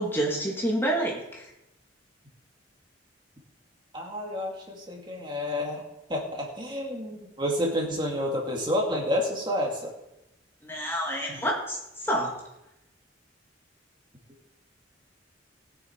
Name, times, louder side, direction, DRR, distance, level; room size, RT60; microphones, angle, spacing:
voice 1, 0.0-1.5 10.6-12.3, right 1 dB, 10° left, -2 dB, 2.2 m, -28 dB
voice 2, 3.9-5.8 6.1-9.9 11.3-11.4, left 1 dB, 25° right, -1 dB, 2.4 m, -29 dB
20.5 x 6.9 x 4.6 m, 0.90 s
head